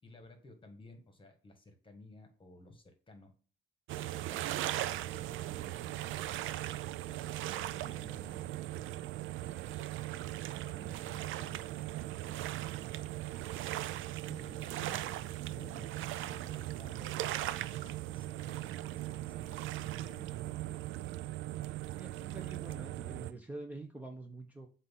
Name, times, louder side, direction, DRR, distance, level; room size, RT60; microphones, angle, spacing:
voice 1, 0.0-3.3 3.9-6.4 7.1-8.7 9.7-11.7 12.1-13.1 14.3-15.1 15.5-20.8, left 1 dB, 25° left, 6 dB, 1.5 m, -57 dB
sound 1, 3.9-23.3, right 14 dB, 85° right, 0.4 m, -39 dB
voice 2, 22.0-24.7, right 2 dB, 5° right, 2 dB, 0.9 m, -46 dB
7.6 x 2.7 x 5.8 m, 0.39 s
cardioid pair, 90°, 20 cm